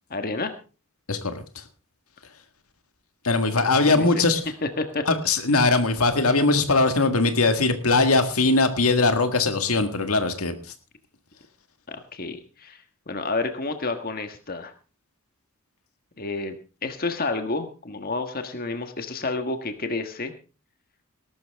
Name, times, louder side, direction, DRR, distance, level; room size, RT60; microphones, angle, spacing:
voice 1, 0.1-0.5 3.9-4.2 4.6-5.0 11.9-14.7 16.2-16.6 16.8-20.3, left 3 dB, 45° left, 7 dB, 1.5 m, -30 dB
voice 2, 1.1-1.4 3.2-4.4 5.1-10.6, left 3 dB, 85° left, 8 dB, 1.8 m, -21 dB
19.0 x 12.5 x 3.5 m, 0.34 s
head